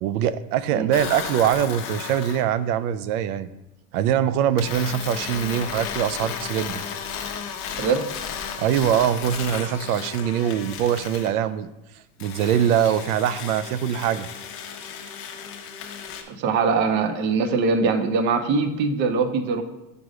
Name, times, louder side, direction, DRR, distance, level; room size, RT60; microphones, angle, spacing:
voice 1, 0.0-3.5 3.9-6.8 8.6-11.7 12.2-14.3, right 9 dB, 90° right, 15 dB, 0.5 m, -23 dB
sound 1, 0.9-2.5 4.6-11.3 12.2-16.2, left 7 dB, 30° left, 0.8 m, -34 dB
voice 2, 7.8-8.1 16.3-19.6, right 4 dB, 25° right, 9 dB, 0.4 m, -22 dB
5.2 x 4.9 x 4.9 m, 0.95 s
supercardioid pair, 140°, 44 cm